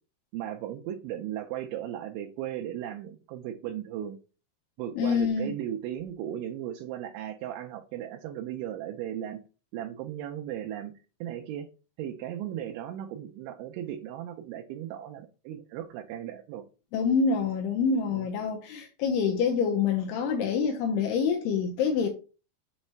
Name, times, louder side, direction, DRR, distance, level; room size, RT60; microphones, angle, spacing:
voice 1, 0.3-4.2 4.8-9.4 9.7-10.9 11.2-11.7 12.0-16.6 18.1-18.3, right 11 dB, 90° right, 3.1 m, -36 dB
voice 2, 5.0-5.5 16.9-22.1, left 6 dB, 80° left, 2.5 m, -26 dB
7.1 x 3.2 x 4.3 m
omnidirectional pair, 5.2 m